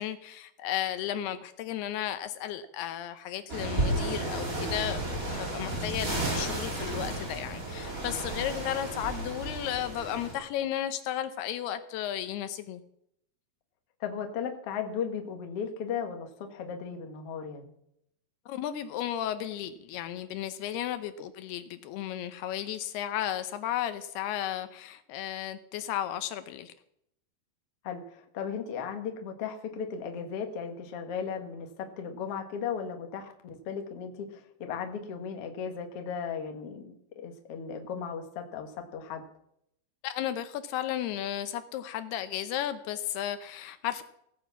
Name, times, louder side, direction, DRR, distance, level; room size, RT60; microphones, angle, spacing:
voice 1, 0.0-12.8 18.5-26.7 40.0-44.0, left 11 dB, 80° left, 10 dB, 2.7 m, -34 dB
sound 1, 3.5-10.3, right 1 dB, 20° right, 3.0 m, -33 dB
voice 2, 14.0-17.6 27.8-39.2, left 7 dB, 55° left, 5 dB, 1.8 m, -36 dB
16.5 x 9.9 x 7.2 m, 0.75 s
omnidirectional pair, 4.9 m